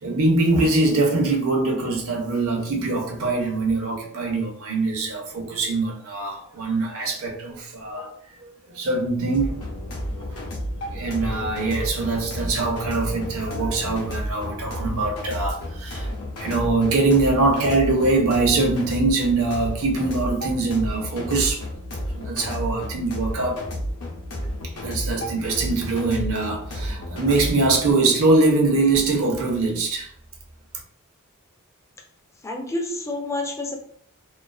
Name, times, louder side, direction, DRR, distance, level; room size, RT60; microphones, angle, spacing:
voice 1, 0.0-8.1 8.4-9.6 10.2-10.4 10.9-16.1 16.4-21.6 22.1-23.7 24.8-30.1, right 3 dB, 70° right, 1 dB, 0.6 m, -23 dB
sound 1, 9.3-27.9, equal, 80° left, 0.7 m, -31 dB
voice 2, 32.4-33.8, left 2 dB, 15° left, 1 dB, 0.4 m, -28 dB
2.3 x 2.3 x 2.3 m, 0.64 s
head